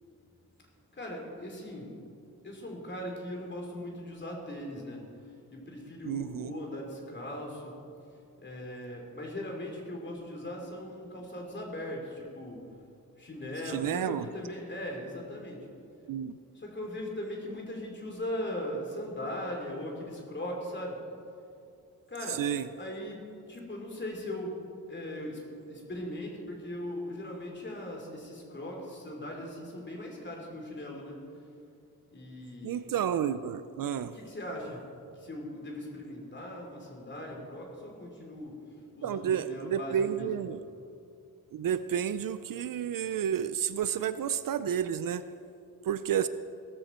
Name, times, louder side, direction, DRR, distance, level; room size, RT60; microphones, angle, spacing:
voice 1, 1.0-1.9 2.4-5.0 5.5-7.7 8.4-12.6 13.2-15.6 16.6-21.0 22.1-22.4 22.8-23.2 23.5-24.6 24.9-31.2 32.1-32.9 34.1-34.8 35.2-38.5 38.9-40.3, left 1 dB, 30° left, 0 dB, 3.0 m, -39 dB
voice 2, 6.0-6.5 13.6-14.3 16.1-16.3 22.4-22.7 32.6-34.1 39.0-40.6 41.5-45.2 45.8-46.3, right 9 dB, 60° right, 13 dB, 0.5 m, -30 dB
17.0 x 14.5 x 4.4 m, 2.5 s
wide cardioid pair, 155°, 37 cm